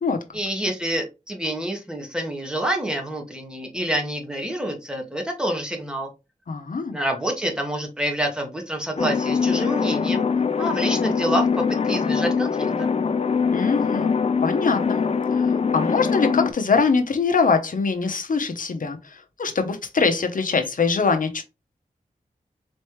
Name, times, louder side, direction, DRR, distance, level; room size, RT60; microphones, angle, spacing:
voice 1, 0.3-6.1 6.9-10.2 10.6-12.7, right 1 dB, 5° right, 1.4 m, -27 dB
voice 2, 6.5-7.0 13.5-14.1 14.4-15.0 15.3-21.4, left 5 dB, 65° left, 0.9 m, -23 dB
sound 1, 9.0-16.5, left 5 dB, 45° left, 0.5 m, -23 dB
4.3 x 3.1 x 3.1 m
wide cardioid pair, 85°, 15 cm